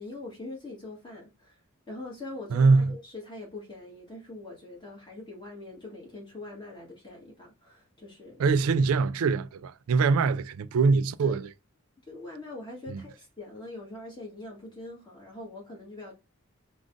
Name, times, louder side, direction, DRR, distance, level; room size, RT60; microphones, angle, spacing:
voice 1, 0.0-1.6 1.9-8.4 11.2-11.4 12.1-16.1, left 2 dB, 20° left, 1.7 m, -43 dB
voice 2, 2.5-2.9 8.4-11.5 12.9-13.0, right 4 dB, 70° right, 0.4 m, -23 dB
5.0 x 2.4 x 3.8 m
head